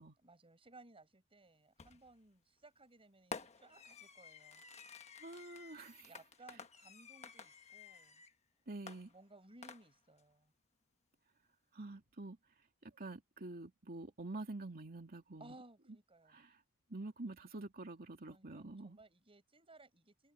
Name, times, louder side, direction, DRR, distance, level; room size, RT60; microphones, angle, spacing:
voice 1, 0.2-4.6 6.0-8.2 9.1-10.5 15.4-16.4 18.3-20.3, right 2 dB, 25° right, 7.0 m, -61 dB
Fireworks, 1.8-2.2 3.3-8.4 8.9-10.2, left 5 dB, 30° left, 1.2 m, -52 dB
voice 2, 5.2-6.1 8.7-9.1 11.7-12.4 12.8-15.6 16.3-16.6 16.9-19.0, right 2 dB, 45° right, 2.8 m, -47 dB
head